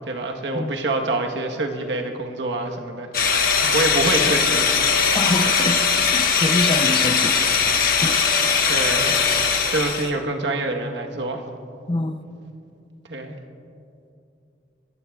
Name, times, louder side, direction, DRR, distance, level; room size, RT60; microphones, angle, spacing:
voice 1, 0.0-3.1 3.5-4.8 8.7-9.2 9.7-11.4 13.1-13.3, right 2 dB, 80° right, 3 dB, 1.1 m, -26 dB
sound 1, 3.1-10.1, left 5 dB, 55° left, 1.3 m, -20 dB
voice 2, 5.1-7.4 8.0-8.2 11.9-12.2, left 2 dB, 30° left, 9 dB, 0.5 m, -25 dB
21.5 x 14.5 x 2.3 m, 2.6 s
head